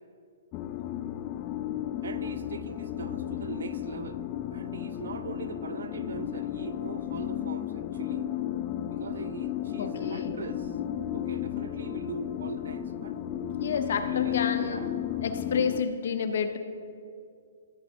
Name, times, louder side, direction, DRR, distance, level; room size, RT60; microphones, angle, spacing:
sound 1, 0.5-15.8, left 11 dB, 30° left, 0.3 m, -33 dB
voice 1, 2.0-4.2 4.5-8.3 8.9-10.8 11.1-13.2 13.7-14.9, right 5 dB, 75° right, 12 dB, 0.5 m, -41 dB
voice 2, 9.8-10.4 13.6-14.8 15.2-16.6, left 6 dB, 65° left, 8 dB, 0.7 m, -29 dB
13.5 x 8.8 x 2.8 m, 2.3 s
hypercardioid pair, 155°, 0 cm